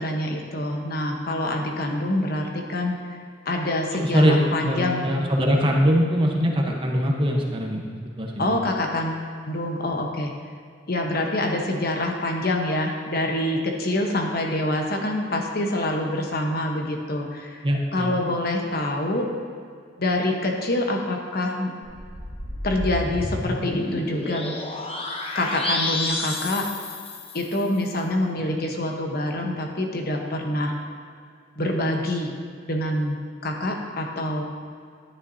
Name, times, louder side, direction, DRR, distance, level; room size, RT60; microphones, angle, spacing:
voice 1, 0.0-3.2 3.4-5.1 8.4-10.3 10.9-17.6 17.9-19.2 20.0-21.7 22.6-24.5 25.3-26.7 27.3-30.7 31.6-32.3 32.6-34.4, left 1 dB, 55° left, 2 dB, 1.0 m, -26 dB
voice 2, 3.9-4.4 4.6-7.9 8.2-8.5 17.6-18.1, equal, 30° right, 0 dB, 1.0 m, -22 dB
sound 1, 21.8-27.7, left 2 dB, 35° left, 0.9 m, -30 dB
11.0 x 9.7 x 2.7 m, 2.2 s
head